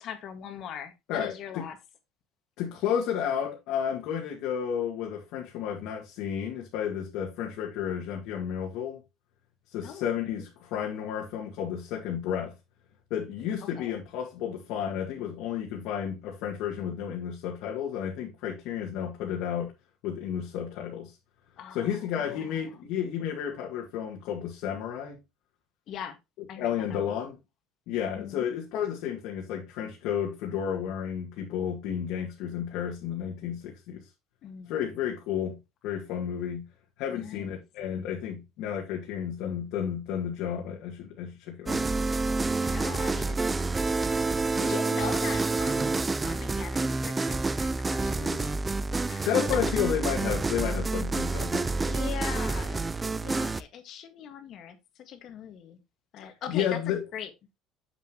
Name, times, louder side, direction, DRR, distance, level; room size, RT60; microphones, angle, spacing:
voice 1, 0.0-1.8 9.8-10.2 13.6-14.0 21.6-22.8 25.9-26.2 26.5-27.1 28.1-28.5 34.4-34.9 37.1-37.6 42.6-43.7 44.4-45.9 46.2-48.6 49.1-49.3 51.8-55.8 56.1-57.3, left 8 dB, 45° left, 1.7 m, -41 dB
voice 2, 1.1-1.6 2.6-9.0 9.7-12.5 13.1-19.7 20.0-21.2 21.7-25.2 26.6-27.4 27.9-34.0 34.7-35.6 35.8-36.6 37.0-41.9 49.2-51.7 56.2-57.0, left 9 dB, 70° left, 2.0 m, -32 dB
sound 1, 41.7-53.6, right 3 dB, 15° right, 0.4 m, -28 dB
7.3 x 7.3 x 2.9 m
cardioid pair, 150°, 0 cm